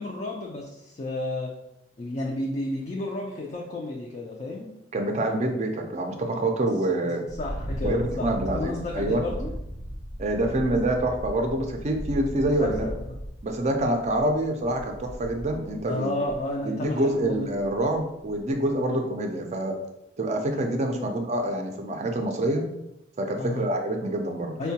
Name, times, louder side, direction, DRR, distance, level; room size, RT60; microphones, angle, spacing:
voice 1, 0.0-1.5 2.0-4.7 7.0-9.5 10.5-10.8 12.5-12.9 15.9-17.5 18.8-19.0 21.0-21.1 23.4-23.7 24.6-24.7, left 2 dB, 35° left, -1 dB, 0.4 m, -32 dB
voice 2, 4.9-7.2 7.8-9.2 10.2-12.9 13.4-16.2 16.6-19.8 20.2-22.7 23.2-24.6, right 1 dB, 35° right, 4 dB, 0.4 m, -26 dB
sound 1, 7.3-15.8 16.3-16.5 17.1-18.0 18.3-18.7, equal, 75° left, 0.8 m, -37 dB
4.5 x 2.2 x 2.7 m, 0.86 s
head